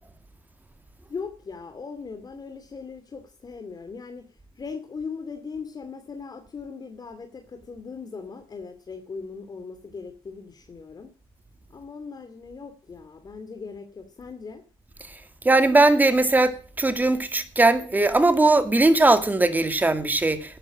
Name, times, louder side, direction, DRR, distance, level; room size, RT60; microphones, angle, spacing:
voice 1, 1.1-4.3 4.6-11.1 11.7-14.6, left 5 dB, 40° left, 2.5 m, -39 dB
voice 2, 15.4-20.6, right 2 dB, 15° right, 2.2 m, -19 dB
12.5 x 9.9 x 7.5 m
cardioid pair, 85°, 11 cm